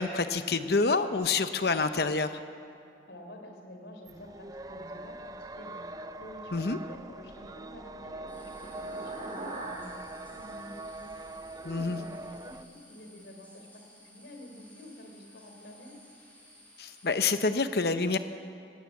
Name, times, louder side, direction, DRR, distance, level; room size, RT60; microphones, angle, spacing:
voice 1, 0.0-2.3 6.5-6.8 11.7-12.0 16.8-18.2, left 4 dB, 65° left, 10 dB, 0.8 m, -27 dB
voice 2, 3.1-16.0, left 1 dB, 85° left, 4 dB, 3.5 m, -49 dB
sound 1, 4.1-12.6, right 2 dB, 20° right, 0.4 m, -43 dB
sound 2, 7.1-11.7, right 2 dB, 35° right, 3.5 m, -45 dB
sound 3, 8.3-17.3, left 1 dB, 10° left, 3.7 m, -57 dB
19.0 x 17.0 x 8.4 m, 2.5 s
head